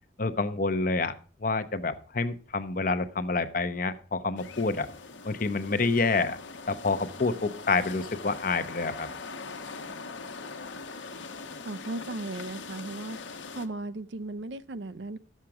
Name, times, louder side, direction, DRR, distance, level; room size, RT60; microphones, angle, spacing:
voice 1, 0.2-1.1 1.4-4.9 5.2-6.4 6.7-9.1, left 3 dB, 45° left, 0.8 m, -28 dB
sound 1, 4.4-13.7, left 4 dB, 85° left, 1.1 m, -42 dB
voice 2, 11.6-13.2 13.5-15.2, right 2 dB, 70° right, 0.6 m, -36 dB
11.5 x 7.4 x 4.8 m
head